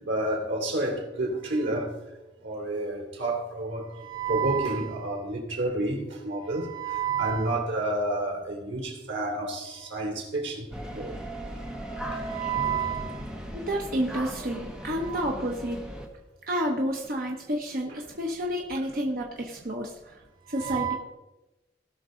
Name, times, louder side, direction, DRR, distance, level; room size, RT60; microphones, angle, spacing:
voice 1, 0.0-1.9 2.4-11.2 12.1-13.2 15.0-15.2 20.6-21.0, right 3 dB, 90° right, 3.1 m, -30 dB
sound 1, 10.7-16.1, right 1 dB, 5° right, 1.0 m, -37 dB
voice 2, 13.5-15.8 16.5-20.2 20.5-20.9, equal, 50° right, 1.1 m, -30 dB
17.5 x 6.3 x 3.9 m
head